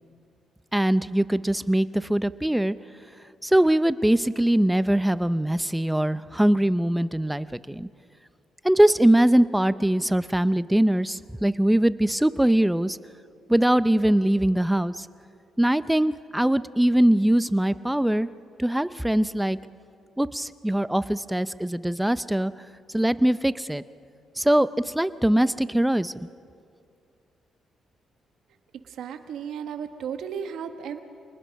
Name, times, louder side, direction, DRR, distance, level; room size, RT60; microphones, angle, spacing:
voice 1, 0.7-2.7 3.4-7.9 8.6-13.0 13.5-15.1 15.6-18.3 18.6-19.6 20.2-22.5 22.9-23.8 24.4-26.3, right 1 dB, 5° right, 14 dB, 0.6 m, -22 dB
voice 2, 28.8-31.0, right 7 dB, 75° right, 7 dB, 1.2 m, -34 dB
26.5 x 20.0 x 6.4 m, 2.4 s
cardioid pair, 90°, 0 cm